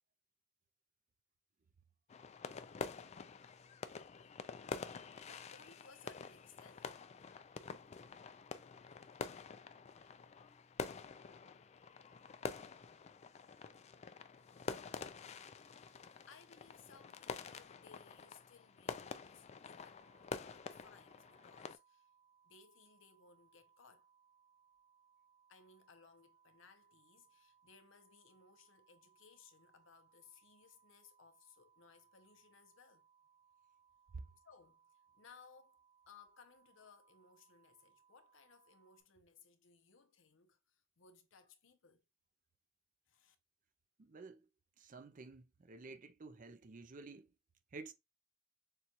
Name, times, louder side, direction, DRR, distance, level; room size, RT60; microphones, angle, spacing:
sound 1, 2.1-21.8, left 5 dB, 35° left, 0.3 m, -48 dB
voice 1, 5.3-7.0 16.3-20.2 20.5-22.1 22.4-24.1 25.5-33.1 34.4-35.8 36.1-42.1 43.1-43.4, left 5 dB, 65° left, 0.7 m, -63 dB
sound 2, 20.0-39.0, right 7 dB, 70° right, 1.2 m, -71 dB
voice 2, 44.0-44.5 44.8-47.3 47.7-47.9, right 3 dB, 40° right, 0.5 m, -51 dB
6.7 x 2.3 x 3.0 m
head